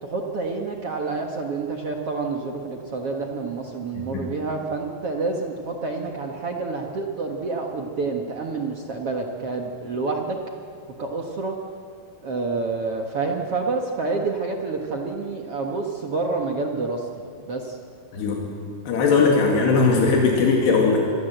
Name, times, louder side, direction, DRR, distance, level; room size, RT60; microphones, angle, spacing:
voice 1, 0.0-10.4 11.0-11.6 12.2-17.8, right 3 dB, 55° right, 1 dB, 1.7 m, -28 dB
voice 2, 18.9-21.0, left 4 dB, 85° left, -1 dB, 4.6 m, -19 dB
27.0 x 22.0 x 8.0 m, 2.5 s
omnidirectional pair, 4.7 m